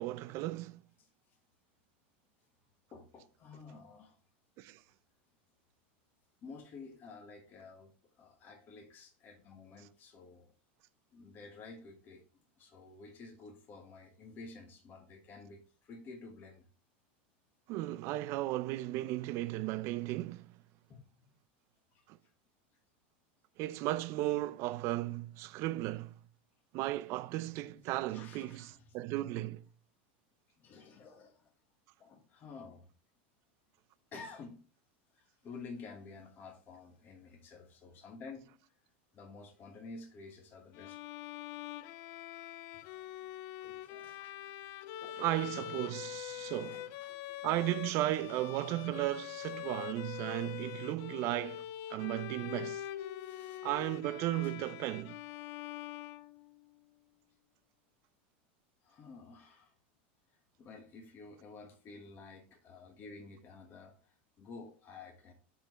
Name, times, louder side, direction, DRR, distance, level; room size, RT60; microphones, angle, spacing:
voice 1, 0.0-0.8 4.6-4.8 17.7-20.5 22.1-22.2 23.6-26.2 26.7-29.6 45.2-46.8 47.4-52.8 53.6-55.1, right 16 dB, 50° right, 0.4 m, -35 dB
voice 2, 1.0-1.4 2.9-4.2 6.4-10.5 11.1-12.2 12.6-16.7 20.9-21.3 21.9-22.3 28.1-29.0 30.5-31.5 32.0-32.9 34.1-34.6 35.1-38.5 39.1-41.0 42.7-43.3 43.6-44.5 45.0-45.1 45.4-45.5 46.6-47.4 47.8-47.9 53.2-53.6 58.8-59.7 60.3-65.3, left 4 dB, 35° left, 1.2 m, -51 dB
Bowed string instrument, 40.7-56.7, left 13 dB, 50° left, 0.4 m, -44 dB
9.8 x 3.9 x 3.0 m
supercardioid pair, 130°, 6 cm